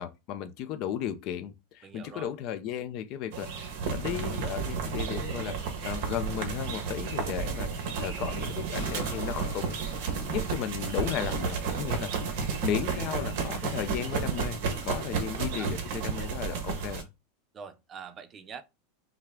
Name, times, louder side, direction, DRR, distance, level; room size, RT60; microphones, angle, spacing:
voice 1, 0.0-9.8 10.1-17.1, left 10 dB, 45° left, 0.6 m, -35 dB
voice 2, 1.8-2.3 15.1-15.3 15.6-15.7 17.5-18.6, right 6 dB, 25° right, 0.4 m, -44 dB
sound 1, 3.3-17.0, right 5 dB, 60° right, 1.4 m, -32 dB
sound 2, 8.8-11.7, left 7 dB, 80° left, 1.2 m, -51 dB
sound 3, 11.7-17.0, right 7 dB, 90° right, 0.9 m, -44 dB
5.7 x 2.2 x 3.7 m
supercardioid pair, 150°, 0 cm